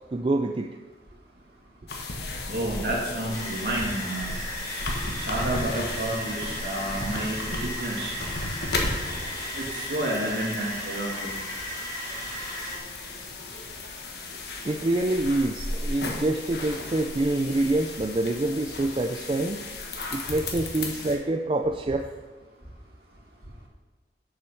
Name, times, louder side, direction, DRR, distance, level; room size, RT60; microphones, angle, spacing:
voice 1, 0.1-0.7 14.6-19.6 20.1-22.1, right 2 dB, 30° right, 4 dB, 0.4 m, -26 dB
sound 1, 1.9-21.2, left 2 dB, 70° left, 1.4 m, -35 dB
voice 2, 2.5-4.3 5.3-8.1 9.5-11.3, right 1 dB, 65° right, -3 dB, 2.4 m, -30 dB
sound 2, 3.3-12.8, equal, 20° left, 3.0 m, -36 dB
7.4 x 6.2 x 6.4 m, 1.3 s
head